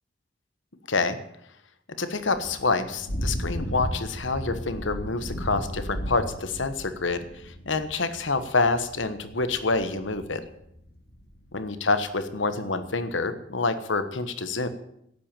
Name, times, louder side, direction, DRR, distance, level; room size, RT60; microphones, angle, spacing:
voice 1, 1.9-10.4 11.5-14.7, left 3 dB, 85° left, 11 dB, 1.3 m, -27 dB
Thunder / Rain, 2.1-11.7, equal, 55° left, 2.6 m, -35 dB
12.0 x 9.0 x 8.9 m, 0.75 s
head